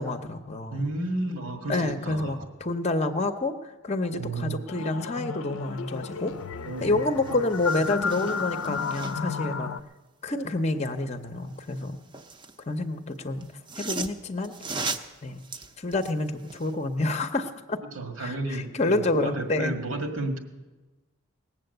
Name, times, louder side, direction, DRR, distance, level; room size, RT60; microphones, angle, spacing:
voice 1, 0.0-0.9 1.7-6.3 6.8-9.7 10.2-12.0 12.7-13.5 13.8-14.5 15.2-15.4 15.8-17.8 18.2-19.7, left 2 dB, 30° left, 9 dB, 0.7 m, -28 dB
voice 2, 0.7-1.8 2.0-2.5 4.1-4.6 6.7-7.0 17.9-20.4, right 2 dB, 85° right, 4 dB, 1.9 m, -32 dB
sound 1, 4.7-9.8, left 5 dB, 75° left, 0.5 m, -33 dB
sound 2, 6.8-6.9 7.2-9.4 11.5-12.6 13.4-16.8 17.2-17.3, right 3 dB, 20° right, 0.6 m, -38 dB
19.0 x 7.4 x 7.9 m, 1.2 s
head